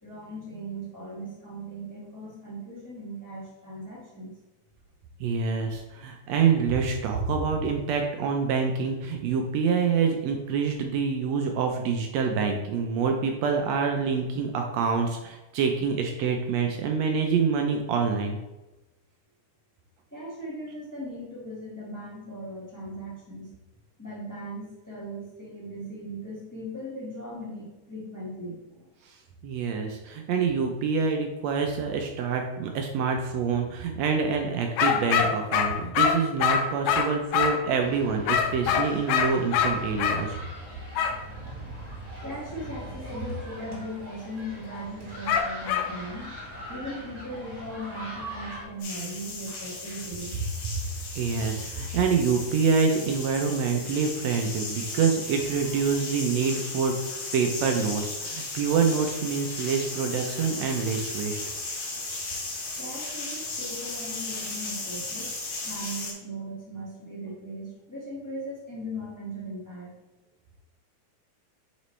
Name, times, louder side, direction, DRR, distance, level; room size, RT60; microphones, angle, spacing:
voice 1, 0.0-4.3 20.1-23.5 24.0-28.9 42.2-46.3 46.7-50.4 55.6-55.8 62.8-65.3 65.6-69.9, right 1 dB, 10° left, -7 dB, 0.9 m, -38 dB
voice 2, 5.2-18.4 29.4-40.4 51.1-56.9 57.3-61.4, right 5 dB, 75° right, 3 dB, 1.6 m, -26 dB
sound 1, 34.8-37.7 38.3-40.2 40.9-41.2 45.3-45.9, left 7 dB, 85° left, 2.2 m, -24 dB
sound 2, 37.8-48.6, right 1 dB, 40° right, 0.5 m, -41 dB
sound 3, 48.8-66.1, left 3 dB, 60° left, 2.6 m, -36 dB
8.3 x 4.1 x 3.2 m, 1.0 s
omnidirectional pair, 3.6 m